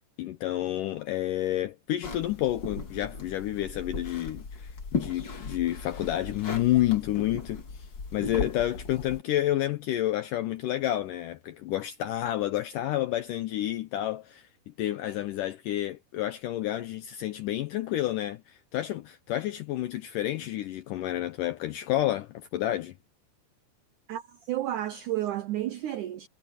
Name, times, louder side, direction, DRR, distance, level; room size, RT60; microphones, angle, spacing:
voice 1, 0.2-23.0, left 14 dB, 80° left, 1.9 m, -30 dB
sound 1, 2.0-9.2, left 4 dB, 40° left, 1.9 m, -37 dB
voice 2, 24.1-26.3, right 13 dB, 80° right, 1.8 m, -31 dB
omnidirectional pair, 4.6 m